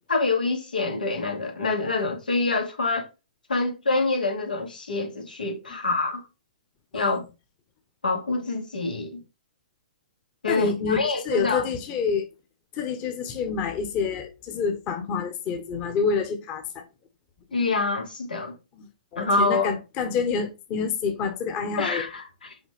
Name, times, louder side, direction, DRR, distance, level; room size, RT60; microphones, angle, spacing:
voice 1, 0.1-3.1 3.5-6.2 6.9-7.2 8.0-9.2 10.4-11.7 17.5-18.6 19.2-19.7 21.8-22.5, left 3 dB, 90° left, 2.7 m, -26 dB
voice 2, 10.5-12.3 12.7-16.8 19.1-22.0, left 5 dB, 30° left, 1.3 m, -27 dB
5.8 x 5.0 x 3.6 m
hypercardioid pair, 130°, 5 cm